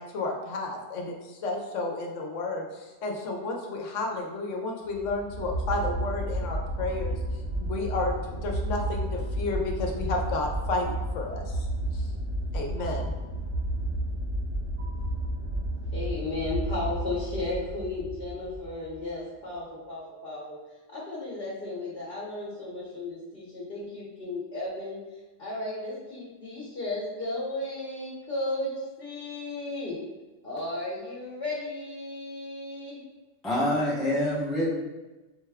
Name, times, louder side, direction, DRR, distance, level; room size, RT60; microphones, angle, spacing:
voice 1, 0.0-7.2 7.6-8.1 8.4-11.7 11.9-12.1 12.5-13.1, left 2 dB, 75° left, 1 dB, 1.0 m, -32 dB
sound 1, 4.9-19.1, right 1 dB, 70° right, 1.4 m, -32 dB
voice 2, 15.9-20.6 20.9-25.0 25.4-30.0 30.4-33.0, left 2 dB, 50° left, -8 dB, 1.0 m, -34 dB
voice 3, 33.4-34.7, left 1 dB, ahead, -6 dB, 0.6 m, -26 dB
5.3 x 2.2 x 3.4 m, 1.2 s
omnidirectional pair, 1.3 m